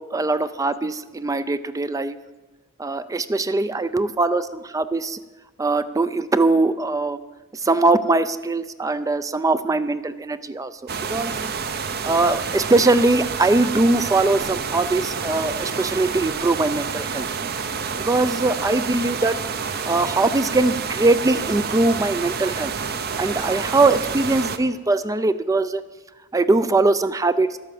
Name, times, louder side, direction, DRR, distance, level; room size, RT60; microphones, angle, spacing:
voice 1, 0.0-2.2 2.8-5.2 5.6-7.2 7.5-10.7 11.1-11.5 12.0-17.3 18.0-19.4 19.9-22.7 23.2-25.8 26.3-27.6, right 2 dB, 15° right, 13 dB, 0.4 m, -21 dB
sound 1, 10.9-24.6, right 5 dB, 50° right, 0.7 m, -28 dB
12.0 x 8.5 x 7.6 m, 1.2 s
head